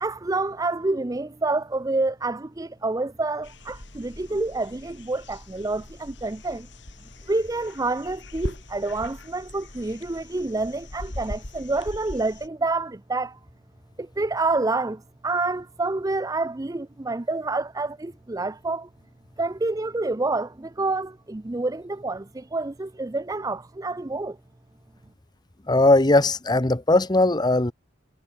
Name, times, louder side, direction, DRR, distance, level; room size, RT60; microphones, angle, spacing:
voice 1, 0.0-6.7 7.3-13.4 14.0-18.9 19.4-24.4, right 2 dB, 20° right, 0.5 m, -28 dB
sound 1, 3.4-12.5, left 1 dB, 65° left, 2.9 m, -40 dB
voice 2, 25.7-27.7, left 2 dB, 20° left, 1.0 m, -19 dB
head